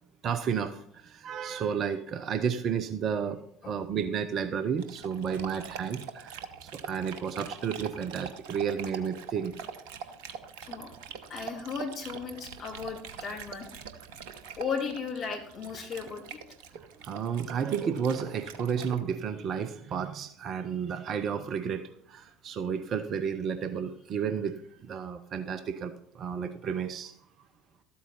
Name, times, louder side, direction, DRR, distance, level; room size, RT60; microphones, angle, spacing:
voice 1, 0.2-9.5 16.7-27.2, right 7 dB, 40° right, 10 dB, 0.8 m, -32 dB
Dog, 4.8-19.0, right 7 dB, 60° right, 1.0 m, -44 dB
voice 2, 11.3-13.7 14.1-14.2 14.6-16.4, left 5 dB, 40° left, 2 dB, 2.8 m, -36 dB
13.0 x 8.5 x 4.2 m, 0.65 s
figure-of-eight pair, 65°, 0 cm